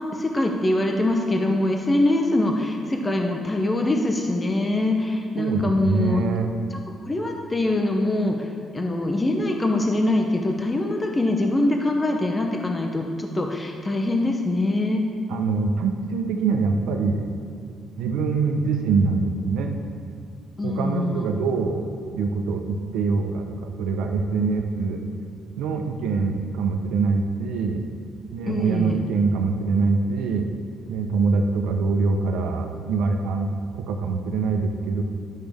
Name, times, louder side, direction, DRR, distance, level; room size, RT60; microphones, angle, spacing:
voice 1, 0.1-6.2 6.7-8.5 8.7-15.1 20.6-21.3 28.5-29.0, left 1 dB, 20° left, 2 dB, 0.8 m, -23 dB
voice 2, 5.4-6.5 15.3-17.2 18.0-19.7 20.6-21.9 22.1-25.0 25.6-27.8 28.3-30.5 30.9-35.0, right 4 dB, 90° right, 4 dB, 0.8 m, -24 dB
11.0 x 6.6 x 3.5 m, 2.3 s
cardioid pair, 90°, 0 cm